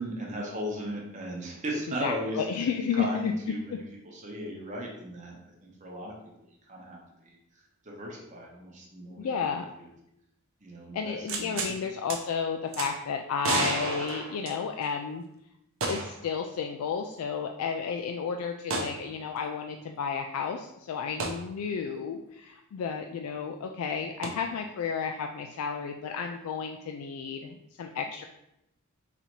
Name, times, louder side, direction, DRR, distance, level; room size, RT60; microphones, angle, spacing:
voice 1, 0.0-2.4 2.9-5.3 5.6-6.1 6.7-7.4 7.8-9.9 10.6-11.7 18.8-18.9, right 1 dB, 35° right, -2 dB, 1.0 m, -37 dB
voice 2, 2.0-3.3 9.2-9.7 10.9-15.2 15.8-28.2, left 6 dB, 85° left, 4 dB, 0.3 m, -32 dB
sound 1, 11.3-11.7 12.1-12.2 12.7-12.9 13.4-14.9 15.8-16.3 16.6-16.7 18.7-19.0 21.2-21.4 24.2-24.3, right 3 dB, 65° right, 0.7 m, -31 dB
4.1 x 2.8 x 4.5 m, 0.84 s
head